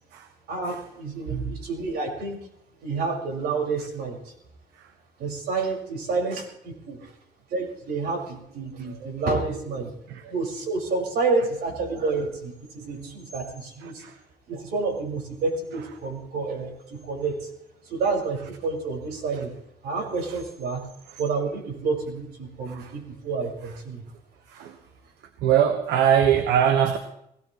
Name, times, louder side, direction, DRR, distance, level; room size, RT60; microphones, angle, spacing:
voice 1, 0.5-2.4 2.8-4.3 5.2-7.1 7.5-9.9 10.2-14.0 14.5-17.5 17.9-19.5 19.8-20.8 21.2-24.0, right 4 dB, 70° right, 0 dB, 5.3 m, -29 dB
voice 2, 25.4-27.0, right 9 dB, 85° right, 7 dB, 1.3 m, -22 dB
21.0 x 17.5 x 3.1 m, 0.76 s
cardioid pair, 110°, 17 cm